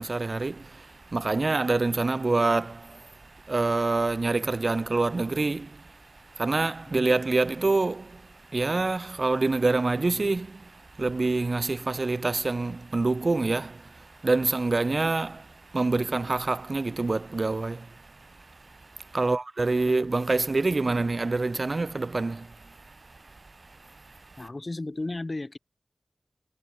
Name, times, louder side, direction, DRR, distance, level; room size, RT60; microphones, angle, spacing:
voice 1, 0.0-24.4, right 3 dB, 60° right, 0.9 m, -27 dB
voice 2, 24.4-25.6, left 2 dB, 40° left, 1.8 m, -34 dB
wide cardioid pair, 65°, 0 cm